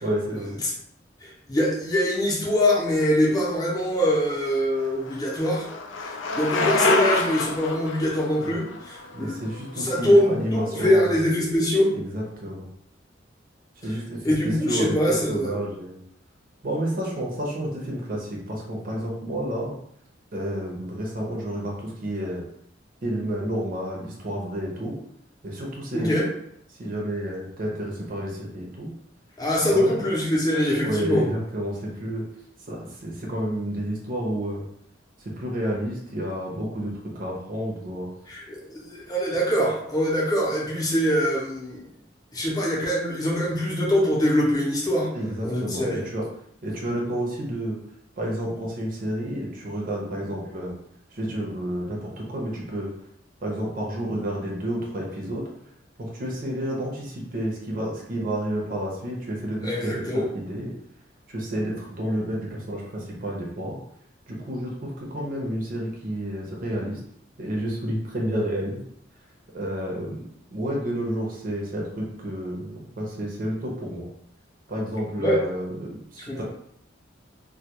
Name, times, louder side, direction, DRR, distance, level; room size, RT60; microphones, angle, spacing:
voice 1, 0.0-0.6 8.4-8.6 9.1-11.2 11.9-12.7 13.8-15.0 15.3-16.0 16.6-19.7 20.3-22.4 23.0-25.0 25.4-26.2 26.7-28.9 29.7-30.0 30.8-32.2 32.7-34.7 35.4-38.1 45.1-46.2 46.6-47.8 48.2-50.7 51.1-52.9 53.4-55.5 56.0-60.7 61.3-63.8 64.3-67.0 67.4-68.8 69.5-70.3 70.5-74.1 74.7-76.4, right 1 dB, 50° right, -2 dB, 0.6 m, -30 dB
voice 2, 1.2-5.7 6.0-9.3 9.8-11.9 14.2-15.6 25.9-26.2 29.4-31.2 38.3-41.9 42.3-45.1 45.4-46.0 59.6-60.3 75.2-75.4 76.3-76.4, equal, 20° left, -4 dB, 0.6 m, -23 dB
Bicycle, 4.3-10.2, left 3 dB, 75° left, 0.3 m, -28 dB
2.2 x 2.2 x 2.8 m, 0.70 s
head